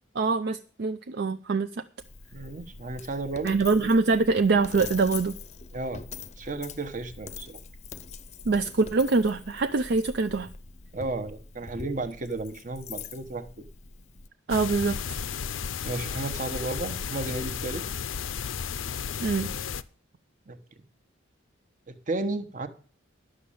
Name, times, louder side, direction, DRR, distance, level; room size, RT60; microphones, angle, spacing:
voice 1, 0.1-1.8 3.4-5.4 8.5-10.5 14.5-15.2 19.2-19.5, right 3 dB, 55° right, 9 dB, 0.5 m, -24 dB
Coin (dropping), 2.0-14.3, left 5 dB, 35° left, 0.6 m, -43 dB
voice 2, 2.3-3.6 5.7-6.0 6.4-7.6 10.9-13.7 15.8-17.8 20.5-20.6 21.9-22.7, right 2 dB, 40° right, 8 dB, 1.1 m, -33 dB
sound 1, 14.5-19.8, left 7 dB, 80° left, 0.6 m, -33 dB
11.0 x 6.4 x 8.6 m, 0.42 s
head